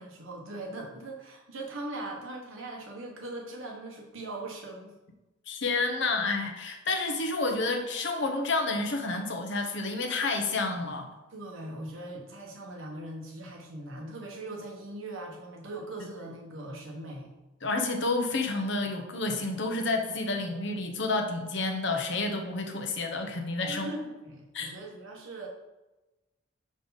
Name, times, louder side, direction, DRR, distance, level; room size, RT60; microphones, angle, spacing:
voice 1, 0.0-5.0 10.5-10.9 11.3-17.3 23.7-25.5, right 2 dB, 75° right, 0 dB, 1.4 m, -40 dB
voice 2, 5.5-11.0 17.6-23.9 24.5-24.7, left 3 dB, 60° left, 4 dB, 0.9 m, -30 dB
5.5 x 5.0 x 4.1 m, 1.1 s
head